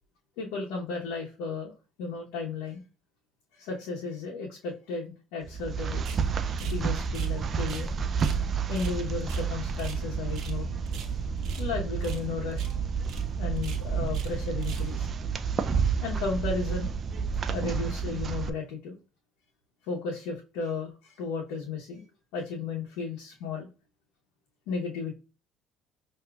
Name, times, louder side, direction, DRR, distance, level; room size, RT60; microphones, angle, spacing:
voice 1, 0.4-1.7 2.0-2.8 3.5-6.0 6.6-7.9 8.7-10.7 11.6-12.7 13.4-15.1 15.6-16.9 17.5-19.0 19.8-22.0 22.3-23.7 24.7-25.2, left 4 dB, 85° left, -2 dB, 0.9 m, -34 dB
sound 1, 5.4-18.5, right 6 dB, 40° right, 0.4 m, -30 dB
sound 2, 6.0-6.2 6.6-7.9 8.2-8.4 8.7-10.0 10.3-10.6 10.8-11.7 12.0-12.3 12.5-12.7 13.0-13.2 13.6-14.3 14.6-14.9, right 7 dB, 65° right, 1.0 m, -45 dB
5.9 x 2.8 x 2.3 m, 0.32 s
supercardioid pair, 90°, 0 cm